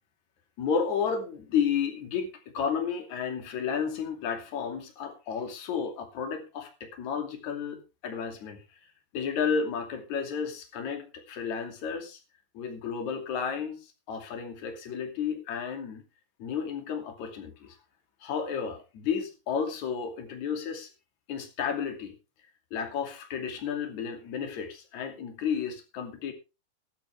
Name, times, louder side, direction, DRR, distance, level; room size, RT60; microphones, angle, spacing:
voice 1, 0.6-7.8 8.0-8.6 9.1-12.2 12.5-16.0 16.4-17.8 18.2-20.9 21.3-22.1 22.7-26.3, left 6 dB, 50° left, 4 dB, 3.6 m, -32 dB
21.0 x 8.8 x 3.5 m, 0.29 s
omnidirectional pair, 4.8 m